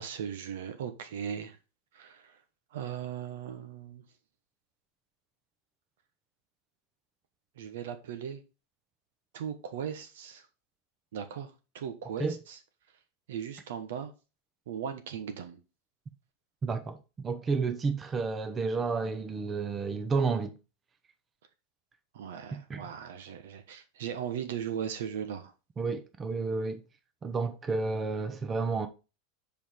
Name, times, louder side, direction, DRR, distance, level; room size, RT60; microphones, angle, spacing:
voice 1, 0.0-1.6 1.9-2.4 2.7-4.0 7.6-8.4 9.3-10.4 11.1-12.6 13.3-14.1 14.7-15.6 22.1-25.5, right 8 dB, 80° right, 1.1 m, -38 dB
voice 2, 16.6-20.5 22.5-22.9 25.8-26.8 27.2-28.9, right 4 dB, 20° right, 0.7 m, -31 dB
5.3 x 4.8 x 4.5 m
supercardioid pair, 135°, 0 cm